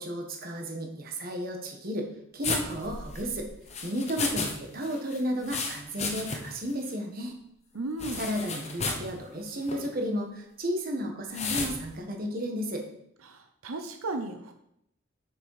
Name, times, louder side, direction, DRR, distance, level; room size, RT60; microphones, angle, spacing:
voice 1, 0.0-2.1 2.3-3.5 3.8-7.3 8.2-12.9, equal, 45° right, 2 dB, 1.4 m, -33 dB
sound 1, 2.4-4.5 4.8-6.6 6.9-7.0 8.0-9.1 9.6-9.9 11.3-11.7, left 4 dB, 30° left, 1.1 m, -33 dB
voice 2, 7.7-8.2 13.2-14.5, right 2 dB, 90° right, 6 dB, 0.8 m, -35 dB
7.1 x 6.4 x 4.9 m, 0.74 s
head